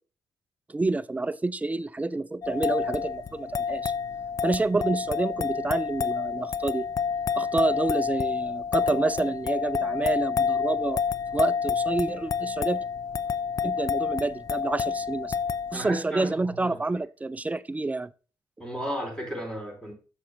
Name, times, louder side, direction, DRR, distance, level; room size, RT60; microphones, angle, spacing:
voice 1, 0.7-3.9 4.4-6.9 7.4-11.0 11.3-12.8 13.6-15.3 15.7-18.1, right 2 dB, 15° right, 0.5 m, -28 dB
sound 1, 2.4-15.8, left 6 dB, 45° left, 0.5 m, -29 dB
voice 2, 15.7-16.8 18.6-19.9, equal, 10° left, 3.6 m, -34 dB
7.2 x 6.6 x 3.7 m
supercardioid pair, 55°, 9 cm